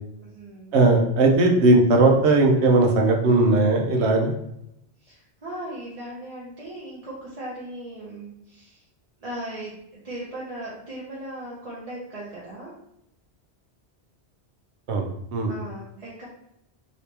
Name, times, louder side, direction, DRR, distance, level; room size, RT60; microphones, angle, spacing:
voice 1, 0.2-0.8 5.0-8.8 9.2-12.7 15.5-16.3, right 1 dB, 40° right, -6 dB, 0.7 m, -38 dB
voice 2, 0.7-4.3 14.9-15.5, right 2 dB, 80° right, 2 dB, 1.0 m, -18 dB
2.9 x 2.9 x 3.3 m, 0.80 s
omnidirectional pair, 1.1 m